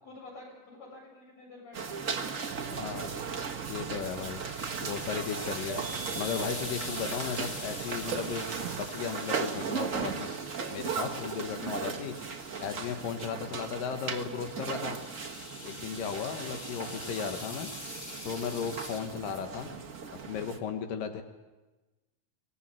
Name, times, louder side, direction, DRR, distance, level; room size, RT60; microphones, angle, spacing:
voice 1, 0.0-2.9 16.7-17.0 19.0-19.3, left 2 dB, 55° left, -1 dB, 8.9 m, -50 dB
sound 1, 1.7-20.6, right 5 dB, 60° right, 0.8 m, -37 dB
Burping eructation, 2.5-8.9, right 11 dB, 75° right, 2.3 m, -43 dB
voice 2, 2.7-3.1 3.7-4.4 4.8-10.3 10.7-12.2 12.6-15.0 15.6-17.7 18.2-19.8 20.3-21.2, left 7 dB, 90° left, 6 dB, 3.0 m, -36 dB
sound 2, 3.6-13.1 14.3-19.0, left 1 dB, 25° left, 4.3 m, -44 dB
25.0 x 19.0 x 7.6 m, 1.2 s
omnidirectional pair, 3.8 m